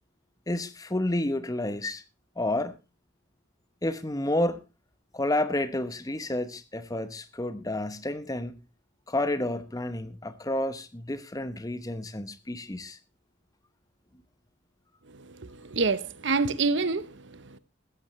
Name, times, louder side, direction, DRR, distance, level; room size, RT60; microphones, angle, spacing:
voice 1, 0.5-2.0 2.4-2.8 3.8-4.6 5.1-8.6 9.1-13.0, left 1 dB, 20° left, 0.9 m, -30 dB
voice 2, 15.1-17.6, right 4 dB, 70° right, 0.9 m, -28 dB
15.5 x 13.5 x 3.2 m
head